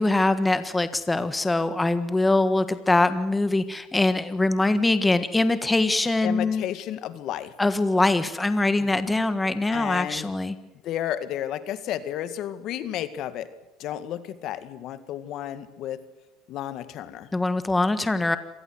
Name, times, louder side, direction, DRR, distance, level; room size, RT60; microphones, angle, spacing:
voice 1, 0.0-6.6 7.6-10.5 17.3-18.4, left 2 dB, 10° left, 11 dB, 1.5 m, -23 dB
voice 2, 6.2-7.5 8.8-8.9 9.7-10.3 10.8-13.5 13.8-16.0 16.5-17.3, left 11 dB, 60° left, 12 dB, 1.9 m, -32 dB
26.5 x 19.0 x 8.0 m, 0.98 s
supercardioid pair, 110°, 0 cm